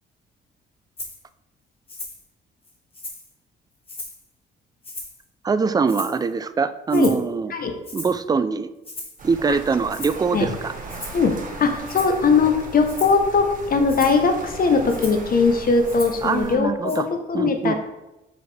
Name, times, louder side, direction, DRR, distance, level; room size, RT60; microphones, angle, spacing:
Rattle (instrument), 1.0-1.2 1.9-2.2 2.6-3.3 3.9-4.2 4.8-5.2 5.9-6.3 6.9-7.3 7.8-8.2 8.8-9.2 9.9-10.2 10.9-11.3 11.8-12.2 12.8-13.2 13.9-14.2 14.9-15.3 15.8-16.3 16.9-17.0, left 2 dB, 30° left, 1.5 m, -37 dB
voice 1, 5.4-7.5 7.9-8.7 9.2-10.7 16.2-17.1 17.3-17.9, right 5 dB, 20° right, 13 dB, 0.3 m, -23 dB
sound 1, 9.2-16.5, right 3 dB, 40° right, 1.3 m, -37 dB
voice 2, 11.1-17.9, left 4 dB, 45° left, 6 dB, 0.8 m, -20 dB
6.4 x 4.9 x 3.3 m, 0.96 s
cardioid pair, 90°, 20 cm